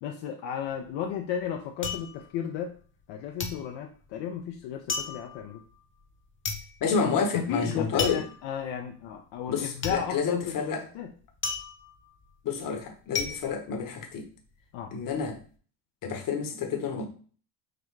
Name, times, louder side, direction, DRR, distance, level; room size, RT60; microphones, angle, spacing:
voice 1, 0.0-2.8 3.1-5.6 7.0-10.6 10.9-11.1 14.7-14.9, left 8 dB, 70° left, 2 dB, 0.7 m, -34 dB
sound 1, 0.7-3.1 3.4-14.5 14.8-15.4, left 5 dB, 25° left, 0.8 m, -36 dB
voice 2, 6.8-8.2 9.5-10.8 12.4-14.2 14.9-15.4 16.0-17.0, left 5 dB, 45° left, 5 dB, 1.1 m, -29 dB
6.0 x 2.2 x 3.2 m, 0.42 s
supercardioid pair, 95°, 46 cm